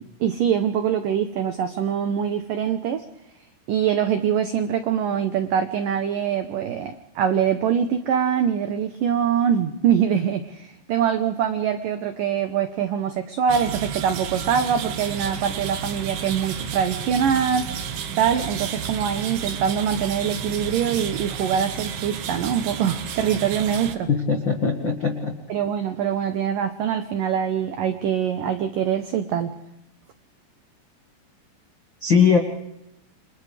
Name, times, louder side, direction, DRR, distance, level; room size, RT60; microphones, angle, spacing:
voice 1, 0.2-3.0 3.7-17.7 18.2-24.1 25.5-29.5, right 8 dB, 85° right, 8 dB, 1.9 m, -24 dB
sound 1, 13.5-24.0, right 8 dB, 65° right, 2.8 m, -32 dB
voice 2, 24.1-25.4 32.0-32.4, left 6 dB, 70° left, 3 dB, 1.1 m, -20 dB
29.5 x 26.0 x 3.4 m, 0.84 s
omnidirectional pair, 5.4 m